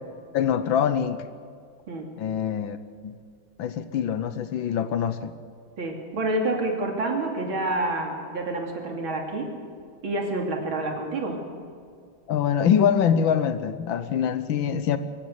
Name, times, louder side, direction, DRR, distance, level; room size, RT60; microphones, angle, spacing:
voice 1, 0.3-1.3 2.2-3.2 3.6-5.3 12.3-15.0, left 8 dB, 70° left, 12 dB, 1.6 m, -24 dB
voice 2, 5.8-9.5 10.0-11.4, right 2 dB, 70° right, 1 dB, 3.5 m, -28 dB
24.0 x 15.0 x 8.1 m, 2.2 s
omnidirectional pair, 2.3 m